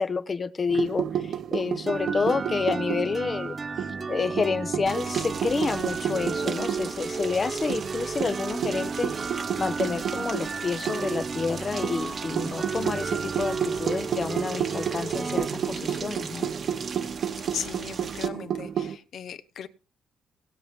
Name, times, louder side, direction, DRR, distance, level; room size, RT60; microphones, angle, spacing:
voice 1, 0.0-16.5, left 4 dB, 35° left, 14 dB, 0.8 m, -29 dB
sound 1, 0.7-3.4 3.8-6.9 7.2-7.3 7.7-11.2 11.8-19.0, right 9 dB, 70° right, 0.9 m, -31 dB
sound 2, 1.9-17.5, right 4 dB, 30° right, 0.4 m, -34 dB
Rain, 4.9-18.3, right 5 dB, 50° right, 1.1 m, -40 dB
voice 2, 17.3-19.7, left 8 dB, 65° left, 12 dB, 1.0 m, -37 dB
18.5 x 7.9 x 3.5 m, 0.35 s
cardioid pair, 90°, 0 cm